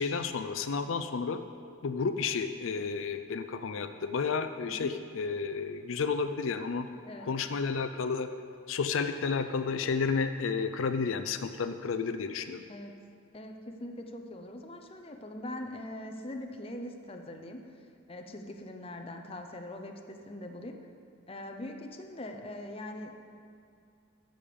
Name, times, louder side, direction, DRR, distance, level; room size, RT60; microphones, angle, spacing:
voice 1, 0.0-1.4 1.8-6.9 7.2-8.3 8.7-12.6, left 5 dB, 85° left, 9 dB, 0.5 m, -31 dB
voice 2, 13.3-17.7 18.1-20.8 21.3-23.1, left 1 dB, 30° left, 4 dB, 0.7 m, -42 dB
12.5 x 5.2 x 6.8 m, 2.4 s
head